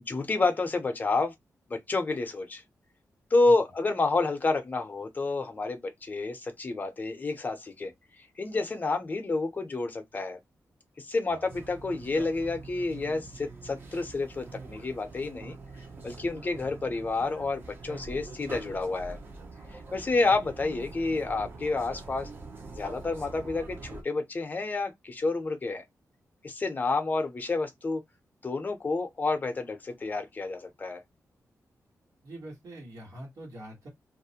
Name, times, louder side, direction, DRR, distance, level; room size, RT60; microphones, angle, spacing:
voice 1, 0.1-1.3 1.7-2.6 3.3-7.9 8.4-10.4 11.0-15.6 16.0-19.2 19.7-22.3 22.7-25.8 26.4-28.0 28.4-31.0, left 3 dB, 30° left, 0.5 m, -29 dB
sound 1, 11.5-24.0, right 3 dB, 35° right, 0.5 m, -44 dB
voice 2, 32.2-33.9, right 1 dB, 70° right, 1.2 m, -44 dB
2.4 x 2.0 x 2.7 m
wide cardioid pair, 160°, 6 cm